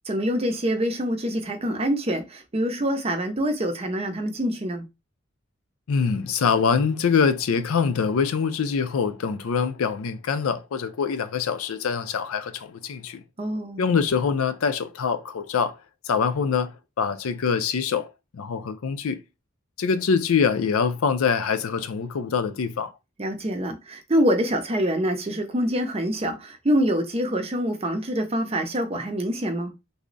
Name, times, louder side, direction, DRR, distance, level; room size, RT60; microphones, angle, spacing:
voice 1, 0.1-4.8 13.4-13.8 23.2-29.7, equal, 30° right, 0.5 m, -25 dB
voice 2, 5.9-13.2 13.8-15.8 16.1-19.2 19.8-22.9, left 6 dB, 80° left, 0.4 m, -24 dB
3.4 x 2.0 x 3.8 m
head